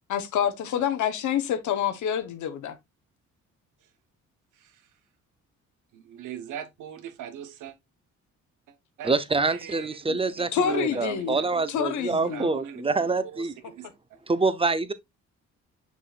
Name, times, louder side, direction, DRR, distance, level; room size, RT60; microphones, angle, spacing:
voice 1, 0.1-2.8 10.1-10.2 10.5-11.4 11.7-12.5, left 9 dB, 75° left, 1.2 m, -27 dB
voice 2, 5.9-7.7 9.0-9.1 9.5-10.0 10.4-11.7 12.1-12.8 13.3-13.9, right 9 dB, 80° right, 1.3 m, -41 dB
voice 3, 9.0-13.5 14.3-14.9, right 3 dB, 20° right, 0.8 m, -26 dB
6.3 x 6.0 x 2.5 m
cardioid pair, 90°, 30 cm